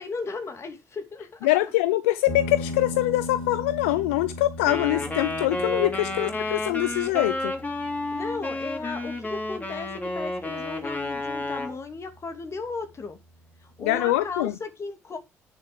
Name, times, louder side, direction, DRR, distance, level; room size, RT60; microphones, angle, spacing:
voice 1, 0.0-1.5 6.2-6.3 8.1-13.2 13.6-15.2, left 4 dB, 45° left, 2.7 m, -35 dB
voice 2, 1.4-7.5 13.8-14.5, left 16 dB, 85° left, 0.5 m, -24 dB
sound 1, 2.3-11.3, left 1 dB, 65° left, 4.1 m, -38 dB
Wind instrument woodwind instrument, 4.6-11.8, left 2 dB, 25° left, 3.1 m, -31 dB
9.9 x 6.8 x 4.8 m
hypercardioid pair, 50°, 7 cm